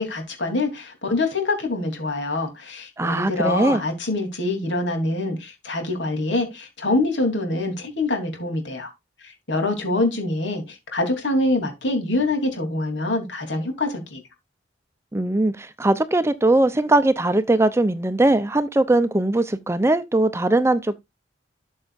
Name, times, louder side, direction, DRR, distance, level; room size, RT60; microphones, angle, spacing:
voice 1, 0.0-8.9 9.5-14.2, left 2 dB, 80° left, 3.1 m, -25 dB
voice 2, 3.0-3.8 15.1-21.0, right 2 dB, 15° right, 0.5 m, -20 dB
12.5 x 6.4 x 2.5 m
head